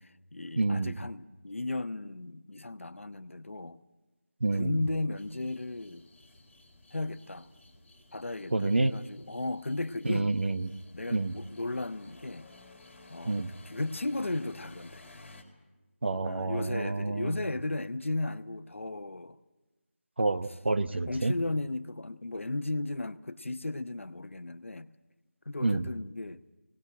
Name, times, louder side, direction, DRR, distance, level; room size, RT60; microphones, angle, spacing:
voice 1, 0.0-3.8 4.5-6.1 6.9-7.5 8.1-10.3 10.9-12.5 13.1-15.0 16.2-19.4 20.9-24.9 25.4-26.4, left 2 dB, 65° left, 0.9 m, -35 dB
voice 2, 0.6-1.0 4.4-4.8 8.5-8.9 10.0-10.7 11.1-11.4 13.3-13.5 16.0-17.3 20.2-21.3 25.6-25.9, right 2 dB, 55° right, 0.9 m, -28 dB
sound 1, 5.1-15.4, left 2 dB, 5° left, 1.8 m, -55 dB
20.0 x 19.0 x 9.1 m
figure-of-eight pair, 170°, 7 cm